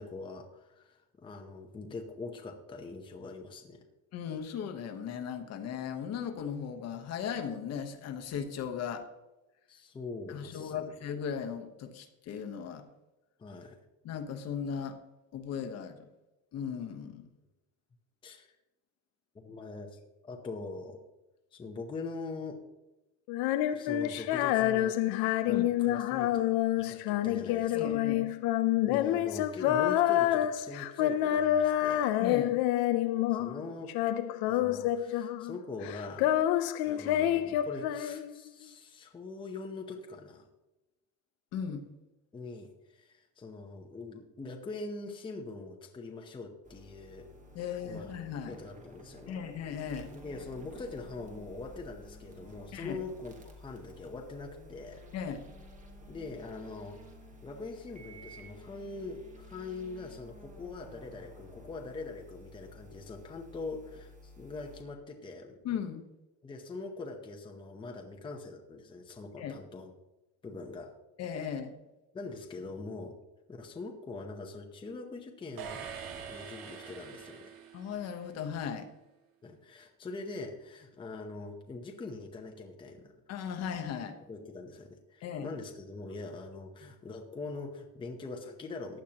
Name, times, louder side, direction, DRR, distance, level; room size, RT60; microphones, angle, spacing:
voice 1, 0.0-3.8 9.7-10.9 13.4-13.8 18.2-18.5 19.3-21.0 21.5-22.6 23.7-26.5 26.8-28.0 28.9-32.1 33.3-33.9 34.5-36.3 36.8-40.5 42.3-47.3 47.8-48.1 48.4-49.4 50.1-55.1 56.1-57.0 57.4-65.6 66.4-69.9 70.4-71.0 72.1-73.2 73.5-75.9 76.3-77.5 79.4-83.1 84.2-89.0, left 3 dB, 15° left, 2 dB, 0.8 m, -43 dB
voice 2, 4.1-9.0 10.3-12.8 14.0-15.0 15.3-16.1 16.5-17.2 25.5-25.6 27.7-28.3 32.2-32.6 41.5-41.9 47.5-48.6 49.3-50.1 52.7-53.0 55.1-55.4 65.6-66.1 69.4-69.6 71.2-71.7 77.7-78.9 83.3-84.2 85.2-85.5, left 7 dB, 45° left, 6 dB, 1.1 m, -37 dB
Female singing, 23.3-33.6 33.9-35.6 35.8-38.5, left 12 dB, 85° left, 0.6 m, -28 dB
sound 1, 46.6-64.8, left 1 dB, 20° right, 1.5 m, -52 dB
sound 2, 75.6-78.4, right 7 dB, 65° right, 2.0 m, -44 dB
15.0 x 10.0 x 2.9 m, 1.0 s
cardioid pair, 170°, 36 cm